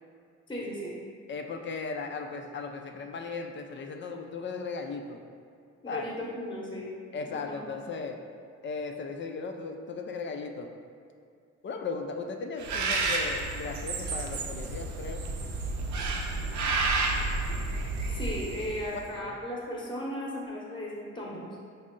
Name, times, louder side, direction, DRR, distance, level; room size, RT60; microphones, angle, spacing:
voice 1, 0.5-0.9 5.8-6.9 7.5-7.7 18.1-21.5, left 1 dB, 15° left, -4 dB, 0.9 m, -36 dB
voice 2, 1.3-5.2 5.9-6.1 7.1-8.2 8.6-10.7 11.6-15.3 18.9-19.4, left 4 dB, 40° left, 4 dB, 0.4 m, -37 dB
Bird, 12.6-19.0, right 3 dB, 70° right, 0.5 m, -31 dB
5.3 x 2.0 x 3.7 m, 2.4 s
cardioid pair, 90°, 30 cm